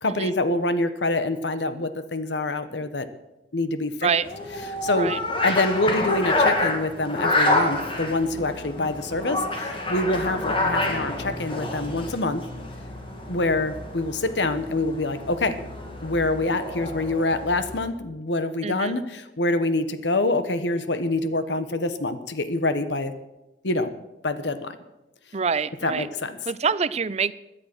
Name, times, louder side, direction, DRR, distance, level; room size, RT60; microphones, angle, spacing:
voice 1, 0.0-3.1 3.5-4.1 4.8-5.1 5.4-12.4 13.3-15.6 16.0-23.1 23.6-23.9 24.2-24.8 25.8-26.4, left 2 dB, 85° left, 11 dB, 1.2 m, -25 dB
sound 1, 4.2-17.9, left 2 dB, 30° left, 2.5 m, -28 dB
voice 2, 18.6-18.9 25.3-26.1 26.5-27.3, right 6 dB, 40° right, 16 dB, 0.5 m, -25 dB
17.0 x 10.5 x 6.2 m, 0.96 s
head